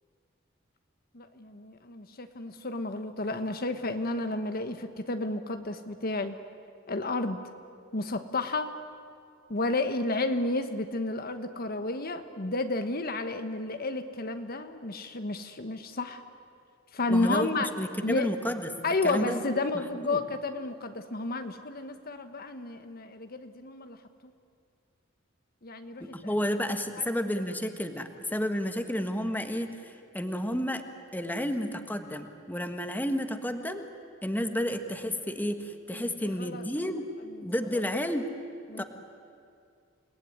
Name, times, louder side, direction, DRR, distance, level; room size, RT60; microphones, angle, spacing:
voice 1, 1.1-6.4 6.9-7.4 7.9-8.7 9.5-16.2 16.9-17.7 18.0-18.3 18.8-24.0 24.2-24.3 25.6-26.3 35.9-36.6 37.3-37.6 38.7-38.8, left 2 dB, 50° left, 8 dB, 1.2 m, -31 dB
voice 2, 17.1-18.7 19.0-19.4 20.1-20.2 26.0-30.8 31.1-33.8 34.2-37.1 37.4-38.3 38.8-38.9, equal, 10° left, 7 dB, 1.5 m, -31 dB
29.5 x 18.5 x 9.7 m, 2.3 s
head